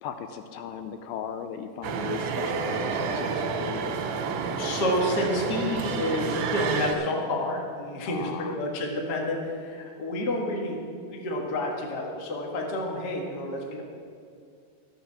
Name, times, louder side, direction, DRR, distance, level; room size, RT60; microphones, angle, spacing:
voice 1, 0.0-4.0 8.1-8.6, left 8 dB, 80° left, 8 dB, 2.3 m, -37 dB
sound 1, 1.8-6.9, right 5 dB, 90° right, 3.0 m, -29 dB
voice 2, 4.5-10.8 11.1-13.8, left 1 dB, 40° left, 0 dB, 1.5 m, -29 dB
12.5 x 8.2 x 7.3 m, 2.4 s
omnidirectional pair, 4.2 m